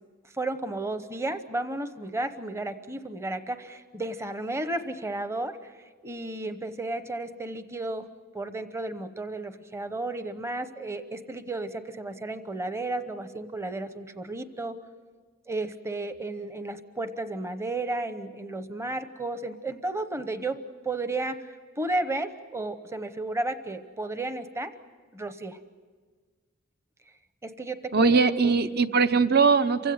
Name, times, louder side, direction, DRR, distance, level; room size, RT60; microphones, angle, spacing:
voice 1, 0.2-5.8 6.0-8.1 8.3-14.8 15.5-20.6 20.8-24.7 25.1-25.6 27.4-28.1 28.4-28.6, right 2 dB, 15° right, 10 dB, 0.9 m, -33 dB
voice 2, 27.9-29.9, right 5 dB, 50° right, 12 dB, 0.8 m, -21 dB
28.0 x 16.5 x 9.5 m, 1.5 s
head